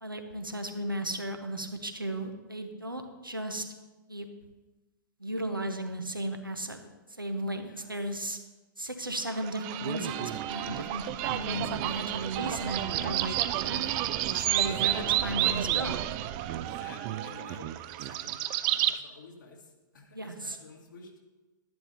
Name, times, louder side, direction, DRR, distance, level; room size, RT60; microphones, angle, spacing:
voice 1, 0.0-3.6 4.1-4.3 5.2-6.8 7.2-8.4 8.8-13.4 13.6-14.1 14.3-16.0 20.1-20.6, right 1 dB, 90° right, 5 dB, 1.0 m, -35 dB
sound 1, 9.3-19.0, right 13 dB, 30° right, 0.4 m, -30 dB
voice 2, 14.5-15.4 16.6-17.7 18.0-21.2, left 3 dB, 65° left, 0 dB, 1.9 m, -52 dB
12.0 x 10.5 x 2.8 m, 1.2 s
figure-of-eight pair, 110°, 11 cm